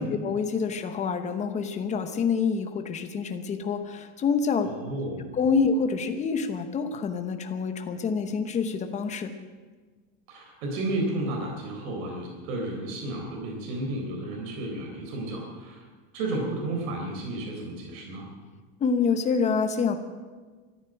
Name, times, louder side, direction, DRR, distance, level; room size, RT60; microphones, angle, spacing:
voice 1, 0.0-4.7 5.3-9.3 18.8-20.0, left 5 dB, 20° left, 8 dB, 0.9 m, -27 dB
voice 2, 4.7-5.3 10.3-15.8 16.1-18.3, right 2 dB, 80° right, 0 dB, 4.0 m, -32 dB
14.0 x 11.5 x 9.0 m, 1.4 s
supercardioid pair, 170°, 40 cm